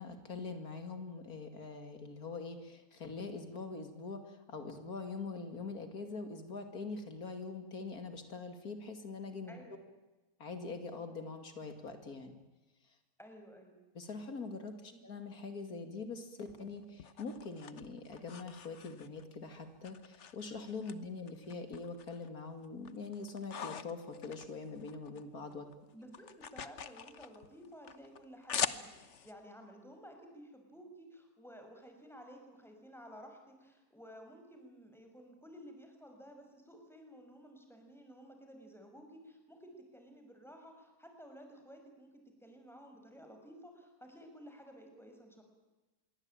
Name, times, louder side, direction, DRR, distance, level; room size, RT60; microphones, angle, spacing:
voice 1, 0.0-9.6 10.4-12.4 13.9-25.7, left 4 dB, 85° left, 7 dB, 2.9 m, -43 dB
voice 2, 9.5-9.9 13.2-13.9 14.9-15.0 25.9-45.4, equal, ahead, 4 dB, 5.8 m, -54 dB
sound 1, 16.5-19.4 19.8-20.9 21.3-22.3 22.6-25.2 25.5-29.3, left 7 dB, 55° left, 1.3 m, -43 dB
26.5 x 23.0 x 9.0 m, 1.1 s
omnidirectional pair, 1.5 m